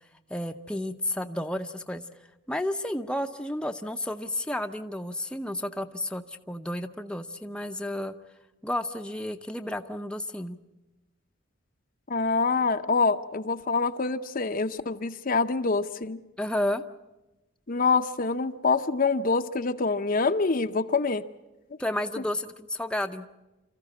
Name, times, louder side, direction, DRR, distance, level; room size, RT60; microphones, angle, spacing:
voice 1, 0.3-2.0 2.5-8.1 8.6-10.6 16.4-16.8 21.8-23.3, left 1 dB, 5° left, 5 dB, 0.7 m, -31 dB
voice 2, 12.1-16.2 17.7-21.2, left 4 dB, 45° left, 9 dB, 0.7 m, -25 dB
27.0 x 14.5 x 8.5 m, 1.1 s
head